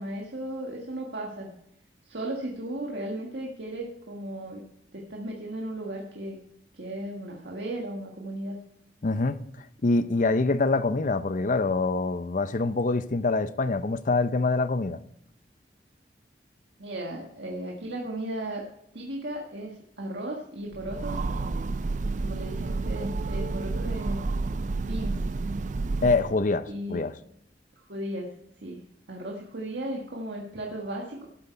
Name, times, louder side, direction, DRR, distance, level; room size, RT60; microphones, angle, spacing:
voice 1, 0.0-1.5 2.0-4.6 4.9-6.4 6.7-8.6 16.8-18.7 18.9-21.7 22.2-24.2 24.8-25.3 26.7-27.1 27.8-28.3 28.6-28.8 29.1-31.3, right 1 dB, 75° right, 1.6 m, -36 dB
voice 2, 9.0-9.4 9.8-15.0 26.0-27.1, left 3 dB, 45° left, 0.6 m, -25 dB
Train, 20.7-26.5, right 3 dB, 45° right, 0.4 m, -30 dB
13.0 x 7.9 x 4.5 m
head